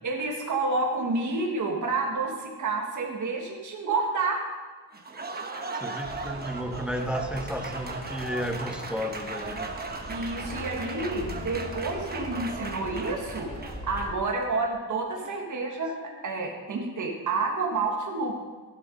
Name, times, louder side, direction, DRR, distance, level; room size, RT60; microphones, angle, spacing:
voice 1, 0.0-4.4 10.1-15.9 16.2-18.4, right 3 dB, 55° right, 0 dB, 1.7 m, -29 dB
Applause, 4.9-14.3, right 3 dB, 25° right, 1.0 m, -37 dB
voice 2, 5.7-9.7 13.5-13.8 15.1-15.3, equal, 5° right, 6 dB, 0.8 m, -33 dB
sound 1, 6.0-14.2, left 2 dB, 20° left, 2.2 m, -41 dB
14.0 x 7.6 x 5.2 m, 1.4 s
wide cardioid pair, 155°, 37 cm